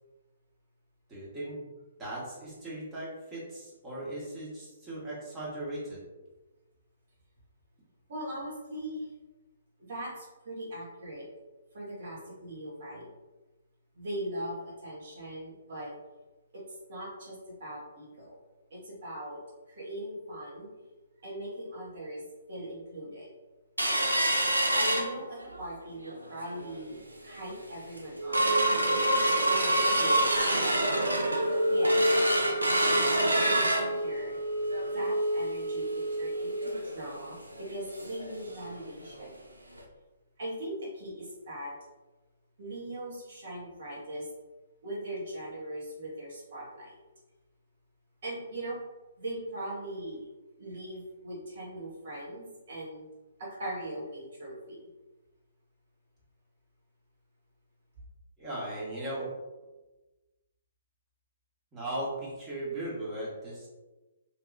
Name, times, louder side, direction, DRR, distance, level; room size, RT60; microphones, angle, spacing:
voice 1, 1.1-1.7 2.0-6.0 58.4-59.3 61.7-63.7, right 1 dB, 15° right, -7 dB, 1.3 m, -37 dB
voice 2, 8.1-9.1 9.8-11.3 11.7-13.1 13.9-15.9 16.5-18.4 18.7-19.4 19.7-20.7 21.2-22.2 22.5-23.3 24.7-32.0 32.9-34.4 34.8-39.4 40.4-41.7 42.6-44.3 44.8-47.0 48.2-48.8 49.2-50.3 50.6-53.1 53.4-54.8, right 1 dB, 55° right, -5 dB, 1.4 m, -40 dB
sound 1, 23.8-25.6 26.1-26.2 26.5-26.8 27.3-27.4 27.8-38.3 38.6-38.7 39.1-39.3 39.8-39.9, right 1 dB, 85° right, 0.5 m, -27 dB
3.2 x 2.8 x 2.5 m, 1.1 s
figure-of-eight pair, 130°, 0 cm